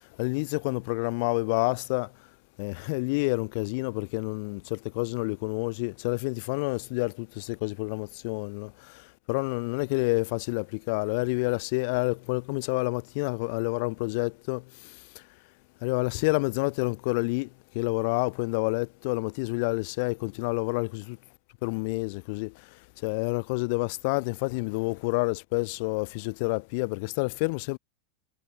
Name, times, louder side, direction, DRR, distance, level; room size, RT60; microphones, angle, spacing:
voice 1, 0.2-2.1 2.6-14.9 15.8-17.5 17.7-21.2 21.6-22.5 23.0-27.8, left 30 dB, 45° left, 0.5 m, -29 dB
figure-of-eight pair, 90°, 0 cm